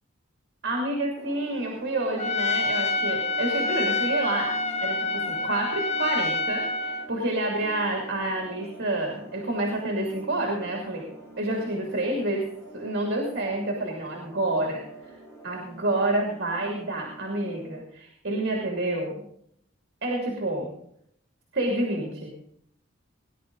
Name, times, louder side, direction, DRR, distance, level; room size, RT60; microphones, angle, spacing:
voice 1, 0.6-11.1 11.4-15.1 15.4-19.2 20.0-20.7 21.5-22.3, right 2 dB, 55° right, 0 dB, 2.8 m, -29 dB
sound 1, 1.1-17.8, right 2 dB, 15° left, 4.6 m, -46 dB
Trumpet, 2.2-7.1, left 3 dB, 30° left, 0.9 m, -27 dB
19.5 x 11.0 x 3.9 m, 0.70 s
head